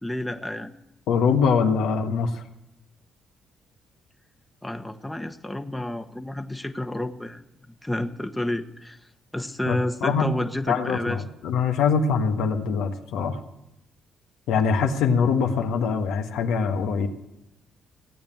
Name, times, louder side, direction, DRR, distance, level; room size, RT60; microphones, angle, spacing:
voice 1, 0.0-0.7 4.6-7.4 7.8-9.0 9.3-11.2, left 1 dB, 10° left, 7 dB, 1.5 m, -30 dB
voice 2, 1.1-2.4 9.6-10.3 10.7-13.4 14.5-17.1, left 6 dB, 75° left, 4 dB, 1.6 m, -23 dB
17.0 x 8.8 x 8.6 m, 0.86 s
hypercardioid pair, 50°, 0 cm